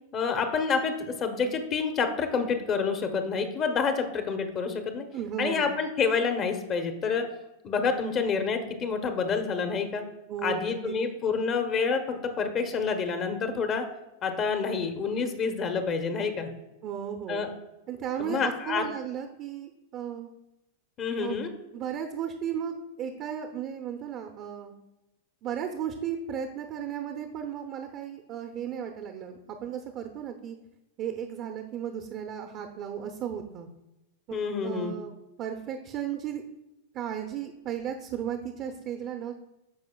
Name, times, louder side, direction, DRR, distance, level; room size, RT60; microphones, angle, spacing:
voice 1, 0.1-5.0 5.4-7.3 7.6-10.0 10.4-13.9 14.2-16.5 17.3-17.5 18.2-18.8 21.0-21.5 34.3-34.9, left 5 dB, 35° left, 6 dB, 1.0 m, -28 dB
voice 2, 5.1-5.7 10.3-10.9 16.8-17.4 17.9-20.3 21.2-21.4 21.7-24.7 25.4-30.6 31.0-33.7 34.3-34.4 34.6-36.4 36.9-39.3, right 9 dB, 40° right, 5 dB, 0.7 m, -35 dB
13.0 x 4.9 x 2.3 m, 0.95 s
figure-of-eight pair, 95°, 0 cm